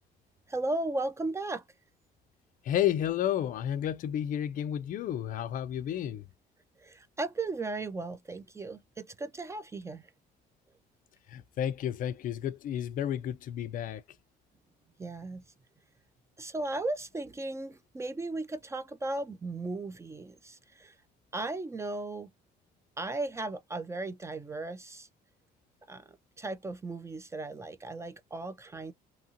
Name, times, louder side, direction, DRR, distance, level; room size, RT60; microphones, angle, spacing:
voice 1, 0.5-1.6 6.8-10.1 15.0-15.4 16.4-21.0 21.3-22.3 23.0-25.1 25.9-26.1 26.4-28.9, right 2 dB, 15° right, 0.4 m, -36 dB
voice 2, 2.6-6.2 11.3-14.0, left 10 dB, 55° left, 0.4 m, -31 dB
2.8 x 2.6 x 2.7 m
cardioid pair, 110°, 17 cm